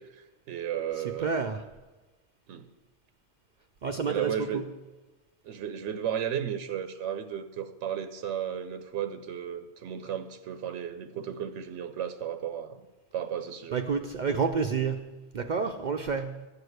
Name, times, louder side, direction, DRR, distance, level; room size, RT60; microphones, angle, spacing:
voice 1, 0.0-1.3 2.5-2.7 4.1-4.6 5.4-12.9 13.1-13.8, right 9 dB, 85° right, 9 dB, 0.9 m, -34 dB
voice 2, 1.0-1.6 3.8-4.6 13.7-16.5, right 5 dB, 60° right, 6 dB, 0.5 m, -29 dB
11.5 x 4.8 x 7.9 m, 1.2 s
omnidirectional pair, 1.2 m